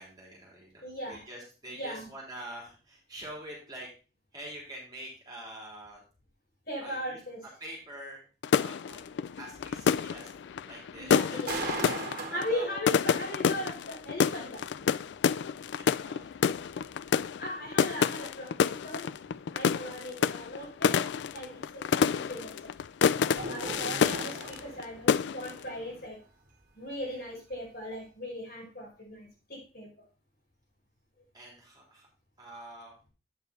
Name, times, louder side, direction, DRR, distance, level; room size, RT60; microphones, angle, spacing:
voice 1, 0.0-0.8 1.1-3.9 4.3-6.0 6.8-7.2 7.6-8.2 8.5-9.1 9.4-10.3 10.6-11.4 11.9-12.9 15.8-16.5 27.0-27.1 31.3-32.1 32.4-32.9, right 1 dB, 20° right, -3 dB, 3.6 m, -45 dB
voice 2, 0.8-1.2 1.7-2.1 6.7-7.4 10.9-14.9 17.4-19.1 19.5-22.7 23.5-26.2 26.7-30.1, equal, 55° left, -3 dB, 4.9 m, -39 dB
sound 1, 8.4-24.8 25.1-25.6, left 7 dB, 70° left, 0.3 m, -28 dB
sound 2, 8.9-9.0 9.4-10.5 10.9-13.1 13.6-13.7 14.1-14.2 14.6-14.7 15.1-15.2 15.6-15.7 16.1-17.3 17.7-17.8 18.2-18.3 18.8-18.9 19.1-19.3 19.8-19.9 20.1-20.5 20.8-20.9 21.3-21.4 21.8-21.9 22.3-22.5 22.9-23.0 23.4-25.2 25.5-26.1 26.4-26.7 27.0-27.1 27.5-27.7, right 2 dB, 50° right, 2.0 m, -40 dB
8.7 x 6.9 x 4.1 m, 0.35 s
head